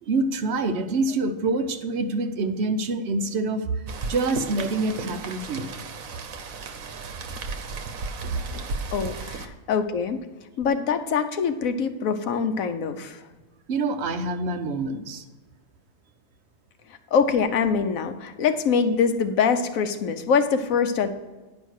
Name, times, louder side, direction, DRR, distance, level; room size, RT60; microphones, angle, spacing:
voice 1, 0.0-5.7 13.7-15.2, right 3 dB, 55° right, 6 dB, 1.0 m, -26 dB
Rain, 3.9-9.5, right 4 dB, 80° right, 1.2 m, -34 dB
voice 2, 8.9-10.2 10.6-13.2 17.1-21.1, left 6 dB, 80° left, 8 dB, 1.2 m, -24 dB
9.8 x 5.2 x 6.3 m, 1.2 s
omnidirectional pair, 1.4 m